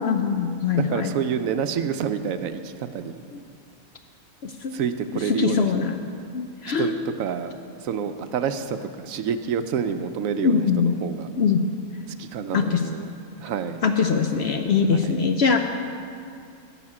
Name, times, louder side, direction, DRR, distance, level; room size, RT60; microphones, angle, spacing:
voice 1, 0.0-1.1 4.4-4.7 5.3-5.9 6.3-7.1 10.4-10.9 11.4-11.6 12.5-12.8 13.8-15.6, left 6 dB, 60° left, 5 dB, 0.7 m, -22 dB
voice 2, 0.8-3.2 4.7-5.7 6.0-6.1 6.8-7.5 7.8-11.3 12.2-13.1 13.4-13.8 14.9-15.2, right 7 dB, 75° right, 10 dB, 1.0 m, -28 dB
14.0 x 5.0 x 8.6 m, 2.4 s
omnidirectional pair, 1.5 m